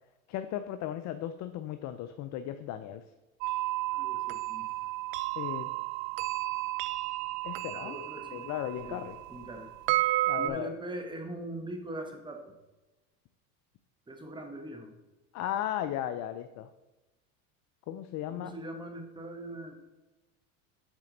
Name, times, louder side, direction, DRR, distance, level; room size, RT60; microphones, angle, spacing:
voice 1, 0.3-3.0 5.4-5.7 7.4-8.0 8.3-9.1 10.3-10.7 15.3-16.7 17.9-18.5, left 11 dB, 40° left, 9 dB, 0.4 m, -36 dB
sound 1, 3.4-10.5, right 18 dB, 65° right, 0.5 m, -32 dB
voice 2, 3.9-4.7 7.7-8.5 8.8-9.0 9.3-9.7 10.4-12.5 14.1-14.9 18.3-19.8, right 1 dB, 10° right, 4 dB, 1.0 m, -41 dB
7.3 x 4.3 x 3.8 m, 1.1 s
supercardioid pair, 95°, 44 cm